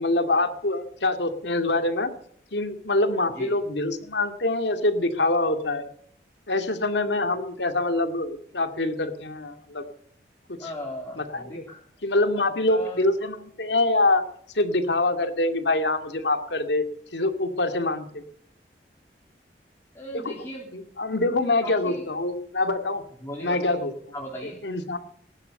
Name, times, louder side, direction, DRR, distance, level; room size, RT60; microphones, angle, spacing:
voice 1, 0.0-2.1 2.5-5.8 6.5-9.8 10.5-10.7 11.2-11.6 12.0-14.2 14.5-16.8 17.1-18.2 20.1-20.3 20.7-23.0 23.4-24.1 24.4-25.0, left 2 dB, 85° left, 7 dB, 2.3 m, -25 dB
voice 2, 10.6-11.8 12.7-13.1 19.9-20.7 21.6-22.0 23.2-23.8 24.1-24.6, equal, 15° left, -4 dB, 3.1 m, -37 dB
19.0 x 12.0 x 5.5 m, 0.64 s
head